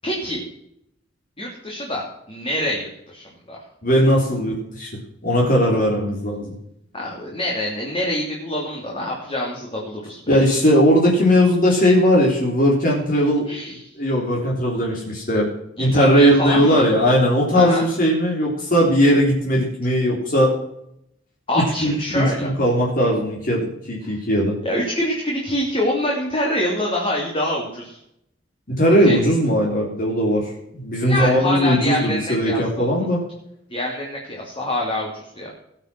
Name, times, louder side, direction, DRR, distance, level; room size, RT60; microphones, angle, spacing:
voice 1, 0.0-0.4 1.4-3.6 6.9-10.4 13.5-13.9 15.8-16.8 17.5-17.8 21.5-22.5 24.6-28.0 29.0-29.2 31.0-32.9 33.7-35.5, left 1 dB, 30° left, -3 dB, 3.1 m, -25 dB
voice 2, 3.8-4.9 5.2-6.5 10.3-15.5 15.8-20.5 21.6-23.6 23.9-24.6 28.7-33.2, equal, 50° left, -3 dB, 3.6 m, -18 dB
19.5 x 6.8 x 6.1 m, 0.77 s
head